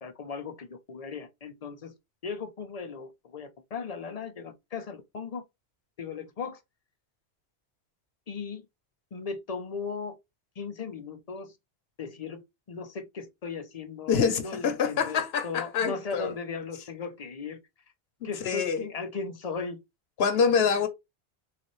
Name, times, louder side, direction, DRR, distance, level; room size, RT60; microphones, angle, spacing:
voice 1, 0.0-1.9 2.2-5.4 6.0-6.6 8.3-8.7 9.1-10.2 10.6-11.5 12.0-12.4 12.7-17.6 18.2-19.8 20.3-20.5, left 5 dB, 45° left, 0.6 m, -37 dB
voice 2, 14.1-16.3 18.2-18.9 20.2-20.9, left 6 dB, 70° left, 1.0 m, -26 dB
3.9 x 2.4 x 3.0 m
omnidirectional pair, 1.1 m